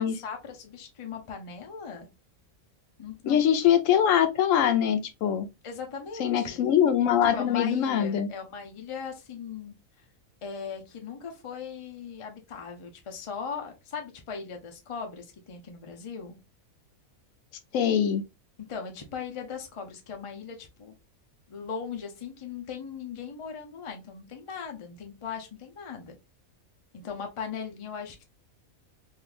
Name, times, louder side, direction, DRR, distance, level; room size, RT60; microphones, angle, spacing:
voice 1, 0.0-2.1 3.0-3.4 5.6-6.7 7.3-10.0 10.4-16.4 18.7-20.9 21.5-26.2 26.9-28.2, left 6 dB, 35° left, 0.5 m, -39 dB
voice 2, 3.3-5.5 6.2-8.3 17.7-18.2, left 9 dB, 70° left, 0.9 m, -23 dB
3.5 x 2.7 x 2.4 m
omnidirectional pair, 1.4 m